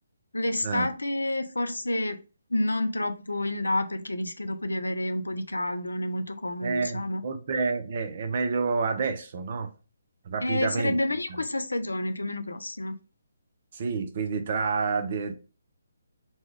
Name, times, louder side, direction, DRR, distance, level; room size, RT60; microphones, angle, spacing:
voice 1, 0.3-2.2 2.5-7.2 10.4-13.0, left 1 dB, 75° left, 0.5 m, -29 dB
voice 2, 6.6-9.7 10.3-11.0 13.7-15.3, right 4 dB, 40° right, 0.6 m, -29 dB
4.2 x 2.3 x 3.1 m
figure-of-eight pair, 140°, 0 cm